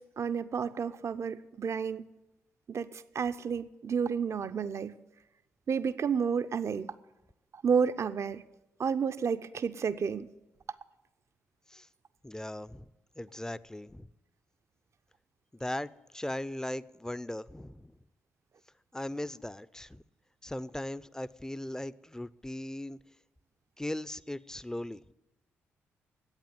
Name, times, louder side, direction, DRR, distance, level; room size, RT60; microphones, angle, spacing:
voice 1, 0.0-2.1 2.7-4.9 5.7-6.9 7.5-8.4 8.8-10.3, right 6 dB, 50° right, 0.6 m, -31 dB
voice 2, 12.2-12.9 13.2-14.1 15.5-17.9 18.9-20.0 20.4-23.0 23.8-25.1, left 1 dB, 10° left, 0.5 m, -38 dB
10.5 x 8.8 x 9.3 m
hypercardioid pair, 40°, 6 cm